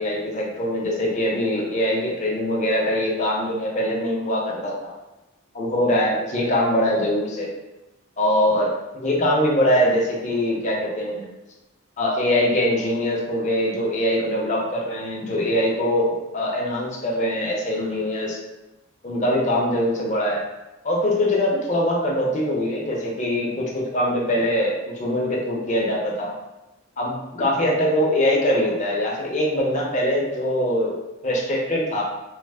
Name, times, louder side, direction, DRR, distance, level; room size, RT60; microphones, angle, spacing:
voice 1, 0.0-4.9 5.5-7.5 8.2-11.3 12.0-18.4 19.0-20.4 20.8-26.3 27.0-31.0 31.2-32.0, left 1 dB, 40° left, -2 dB, 0.6 m, -23 dB
3.1 x 2.0 x 3.4 m, 1.0 s
head